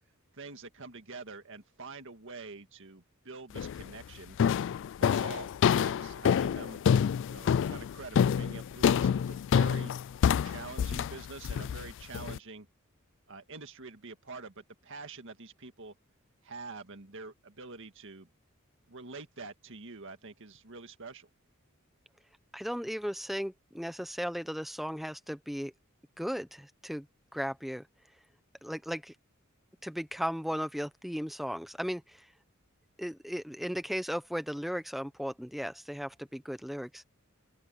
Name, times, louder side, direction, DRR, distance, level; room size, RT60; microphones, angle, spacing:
voice 1, 0.3-4.4 5.0-6.8 7.3-9.9 10.4-12.7 13.3-15.9 16.4-18.3 18.9-21.3, right 3 dB, 65° right, 1.9 m, -46 dB
sound 1, 3.6-3.9 4.4-12.4, left 7 dB, 60° left, 0.3 m, -27 dB
voice 2, 22.5-25.7 26.2-27.1 27.3-27.9 28.6-29.1 29.8-32.3 33.0-37.1, equal, ahead, 0.9 m, -36 dB
open air
head